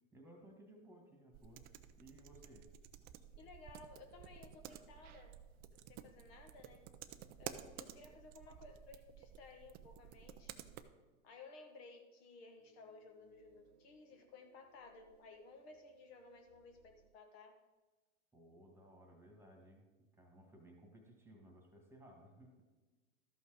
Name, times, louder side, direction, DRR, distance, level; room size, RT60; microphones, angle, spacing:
voice 1, 0.1-1.7 2.0-2.7 18.3-22.6, right 1 dB, 5° right, 1 dB, 1.9 m, -60 dB
sound 1, 1.3-10.8, right 10 dB, 25° right, 0.4 m, -53 dB
voice 2, 3.3-5.4 5.7-6.9 7.4-10.5 11.2-17.5, left 3 dB, 50° left, 4 dB, 1.4 m, -57 dB
sound 2, 12.5-17.2, right 8 dB, 50° right, 0.9 m, -70 dB
13.0 x 5.5 x 5.1 m, 1.2 s
hypercardioid pair, 125°, 40 cm